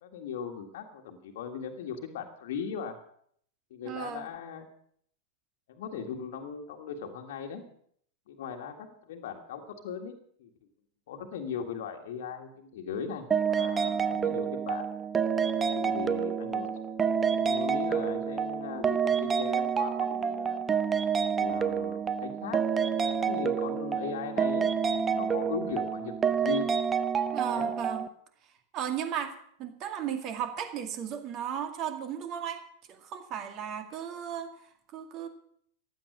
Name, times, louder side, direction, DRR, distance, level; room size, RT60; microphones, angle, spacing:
voice 1, 0.0-3.0 3.7-4.7 5.7-7.6 8.3-10.1 10.4-10.5 11.1-14.8 15.7-16.7 17.4-20.6 21.2-22.6 23.0-26.7 27.4-27.7, left 6 dB, 55° left, 3 dB, 1.7 m, -38 dB
voice 2, 3.8-4.3 27.3-28.0 28.7-29.3 29.6-32.6 32.9-35.3, right 9 dB, 35° right, 7 dB, 2.2 m, -35 dB
sound 1, 13.3-28.1, right 7 dB, 20° right, 0.8 m, -28 dB
15.5 x 11.0 x 6.3 m, 0.64 s
figure-of-eight pair, 90°, 0 cm